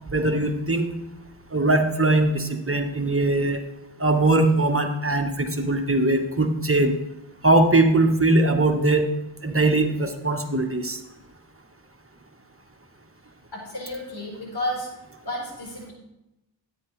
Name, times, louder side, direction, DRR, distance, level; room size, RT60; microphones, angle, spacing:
voice 1, 0.1-0.8 1.5-3.6 4.0-7.0 7.4-9.1 9.4-11.0, right 2 dB, 35° right, 4 dB, 1.3 m, -21 dB
voice 2, 13.5-14.9 15.2-15.9, left 1 dB, 80° left, -3 dB, 4.5 m, -31 dB
13.5 x 9.2 x 3.3 m, 0.92 s
wide cardioid pair, 45°, 39 cm